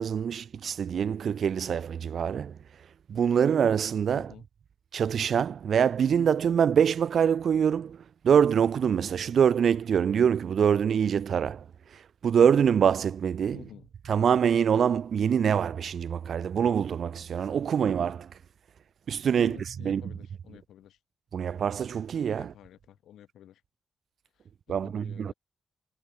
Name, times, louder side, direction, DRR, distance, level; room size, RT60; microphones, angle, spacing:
voice 1, 0.0-2.5 3.1-4.3 4.9-8.0 8.2-11.6 11.9-13.6 14.1-18.3 19.1-19.6 19.9-20.0 21.3-22.5 24.7-25.3, right 8 dB, 65° right, 0.3 m, -24 dB
voice 2, 4.1-4.5 13.5-13.9 19.4-21.0 22.3-23.6 24.3-25.3, left 11 dB, 85° left, 6.6 m, -51 dB
cardioid pair, 65°, 0 cm